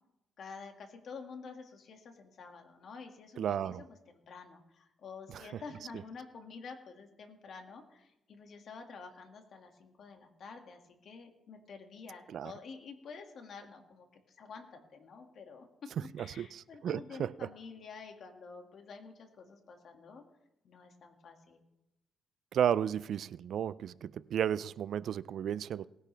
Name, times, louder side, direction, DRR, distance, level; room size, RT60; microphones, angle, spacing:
voice 1, 0.4-20.2 20.6-21.7, left 5 dB, 60° left, 2.1 m, -49 dB
voice 2, 3.4-3.8 5.3-5.4 12.3-12.5 16.1-17.3 22.5-25.9, right 9 dB, 65° right, 0.3 m, -33 dB
19.5 x 10.5 x 3.4 m
cardioid pair, 90°, 0 cm